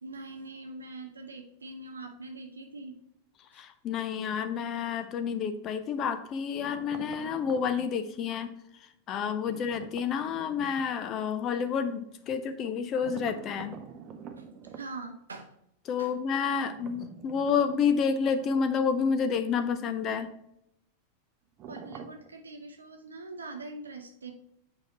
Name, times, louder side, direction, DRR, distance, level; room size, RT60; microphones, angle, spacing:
voice 1, 0.0-3.0 9.5-9.6 14.4-15.5 16.0-16.1 21.7-24.3, right 3 dB, 75° right, 5 dB, 0.5 m, -43 dB
voice 2, 3.5-13.8 15.9-20.3, left 6 dB, 35° left, 10 dB, 0.5 m, -29 dB
sound 1, 6.6-7.9 9.5-10.9 13.0-14.9 16.6-19.0 19.3-19.4 21.6-22.3, right 7 dB, 35° right, 0.7 m, -46 dB
8.4 x 4.7 x 2.9 m, 0.77 s
figure-of-eight pair, 90°, 0 cm